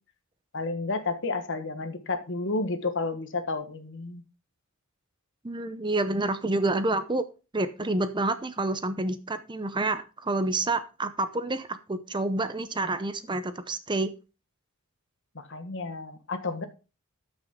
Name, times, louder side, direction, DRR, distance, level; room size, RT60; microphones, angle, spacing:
voice 1, 0.5-4.2 15.3-16.7, left 3 dB, 60° left, 9 dB, 1.4 m, -31 dB
voice 2, 5.4-7.2 7.5-14.1, right 2 dB, 20° right, 11 dB, 0.7 m, -28 dB
13.5 x 6.2 x 3.7 m, 0.31 s
head